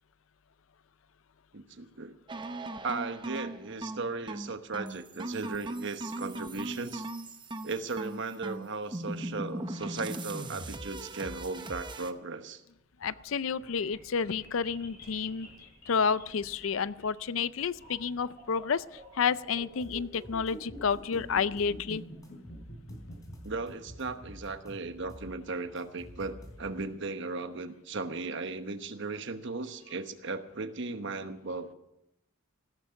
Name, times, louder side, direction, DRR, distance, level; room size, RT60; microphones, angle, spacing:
voice 1, 1.5-2.1 2.8-7.0 7.6-12.6 23.4-31.7, right 3 dB, 60° right, 9 dB, 1.1 m, -36 dB
sound 1, 2.3-12.1, right 2 dB, 20° right, 0.8 m, -39 dB
sound 2, 12.8-26.9, equal, 50° left, 5.7 m, -49 dB
voice 2, 13.0-15.5 15.9-22.0, left 6 dB, 65° left, 17 dB, 0.5 m, -30 dB
sound 3, 19.8-21.9 22.2-23.7 24.0-26.9, equal, 15° left, 4.0 m, -49 dB
16.0 x 13.5 x 5.8 m, 0.84 s
head